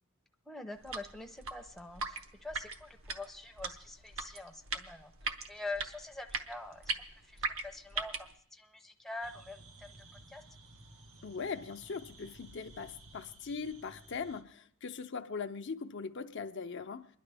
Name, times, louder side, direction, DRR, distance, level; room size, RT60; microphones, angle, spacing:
voice 1, 0.5-6.8 7.2-10.4, left 2 dB, ahead, 0.6 m, -45 dB
sound 1, 0.8-8.3, right 4 dB, 70° right, 1.0 m, -40 dB
sound 2, 9.2-14.4, right 2 dB, 90° right, 1.3 m, -56 dB
voice 2, 11.2-17.1, left 5 dB, 60° left, 0.6 m, -40 dB
28.0 x 11.0 x 3.4 m
head